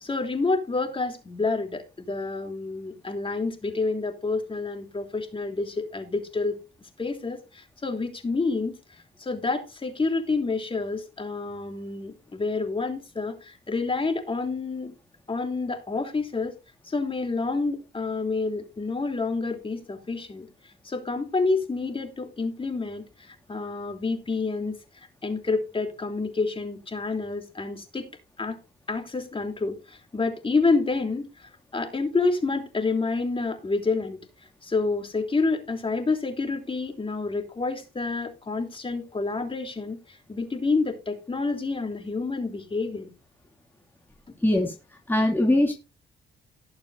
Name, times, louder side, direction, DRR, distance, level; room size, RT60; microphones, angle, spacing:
voice 1, 0.0-6.6 7.0-8.7 9.2-14.9 15.3-16.5 16.9-20.5 20.8-24.8 25.2-28.0 28.4-28.6 28.9-34.2 34.6-40.0 40.3-43.1, left 3 dB, 25° left, 3.2 m, -28 dB
voice 2, 44.4-44.7 45.1-45.7, left 1 dB, 10° left, 2.6 m, -21 dB
18.5 x 6.7 x 2.6 m
cardioid pair, 90°, 20 cm